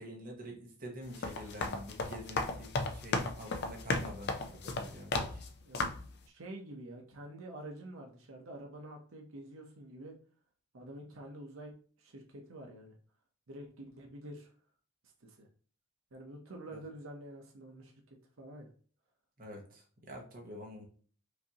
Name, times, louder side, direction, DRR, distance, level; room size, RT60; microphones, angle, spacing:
voice 1, 0.0-5.4 16.7-16.8 19.4-20.8, equal, 45° right, 0 dB, 1.1 m, -47 dB
sound 1, 1.0-5.5 5.7-6.1, left 3 dB, 55° left, 0.5 m, -35 dB
voice 2, 6.3-10.1 10.7-11.7 12.0-12.9 13.5-14.5 15.2-15.5 16.1-18.7, right 1 dB, 85° right, 1 dB, 0.8 m, -48 dB
5.0 x 2.7 x 2.9 m, 0.44 s
head